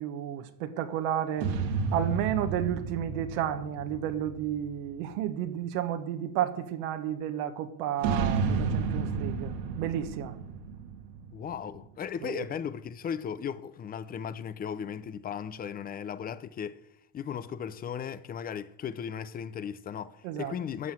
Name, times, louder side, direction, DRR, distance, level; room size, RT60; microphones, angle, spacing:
voice 1, 0.0-1.5 1.9-10.4 12.2-12.5 20.2-20.5, right 10 dB, 65° right, 1.4 m, -32 dB
sound 1, 1.4-5.1 8.0-11.8, right 5 dB, 85° right, 2.6 m, -32 dB
voice 2, 11.3-16.8 17.1-20.9, left 8 dB, 20° left, 0.5 m, -36 dB
13.0 x 5.6 x 7.7 m
supercardioid pair, 120°, 50 cm